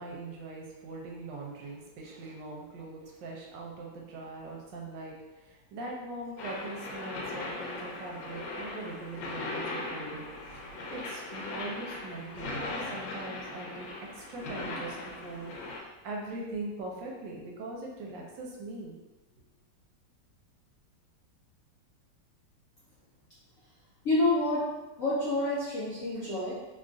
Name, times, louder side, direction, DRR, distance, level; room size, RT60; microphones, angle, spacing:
voice 1, 0.0-13.9 14.1-19.0 19.4-19.5, right 2 dB, 75° right, -1 dB, 1.2 m, -41 dB
sound 1, 6.4-15.8, left 2 dB, 85° left, 1.3 m, -39 dB
voice 2, 24.0-24.7 25.0-26.5, left 2 dB, 70° left, -8 dB, 0.8 m, -28 dB
3.2 x 2.3 x 2.5 m, 1.1 s
omnidirectional pair, 2.1 m